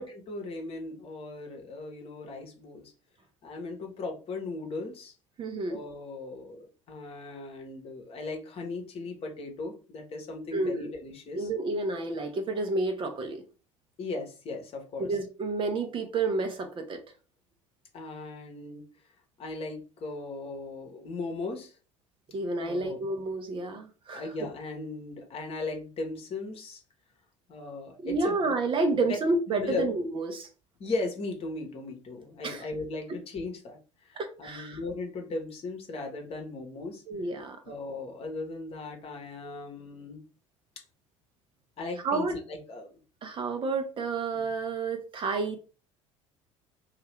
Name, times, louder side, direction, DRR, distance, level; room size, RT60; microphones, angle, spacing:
voice 1, 0.0-2.9 3.4-5.1 5.7-11.5 14.0-15.1 17.9-18.8 19.4-21.7 22.6-23.0 24.1-26.8 27.5-28.3 29.6-29.9 30.8-37.0 37.6-40.2 41.8-42.9, left 3 dB, 35° left, 2 dB, 1.0 m, -37 dB
voice 2, 5.4-5.8 10.5-10.9 11.4-13.4 15.0-17.0 22.3-24.3 28.0-30.5 32.4-32.7 34.2-34.8 37.1-37.6 42.0-42.4 43.2-45.6, right 3 dB, 30° right, 6 dB, 0.7 m, -30 dB
2.7 x 2.4 x 3.3 m, 0.35 s
figure-of-eight pair, 65°, 16 cm